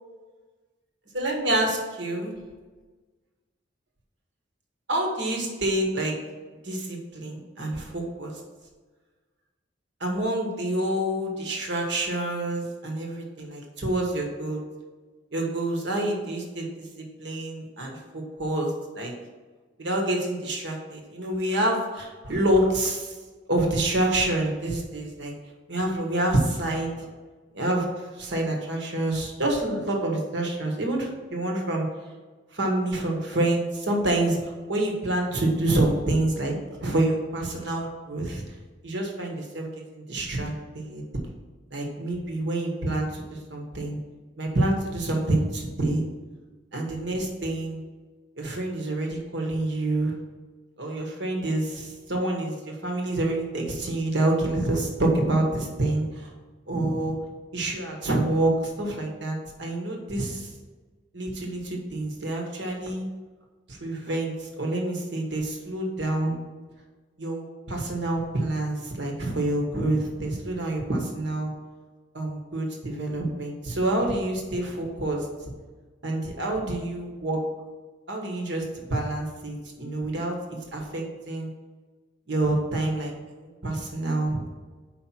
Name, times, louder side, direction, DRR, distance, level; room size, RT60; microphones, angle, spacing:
voice 1, 1.1-2.3 4.9-6.2 6.6-8.4 10.0-14.6 15.3-19.1 19.8-23.2 23.5-25.3 25.7-27.1 27.5-27.9 28.1-31.9 32.5-38.4 38.8-39.7 39.9-41.0 41.7-44.0 44.4-46.0 46.7-47.8 48.4-50.1 50.8-56.3 56.7-57.2 57.5-60.5 61.1-63.1 63.7-66.3 67.2-71.5 72.1-75.2 76.0-77.4 78.1-81.5 82.3-83.1 83.4-84.4, right 1 dB, 65° right, 0 dB, 1.4 m, -27 dB
5.1 x 4.3 x 5.9 m, 1.4 s
head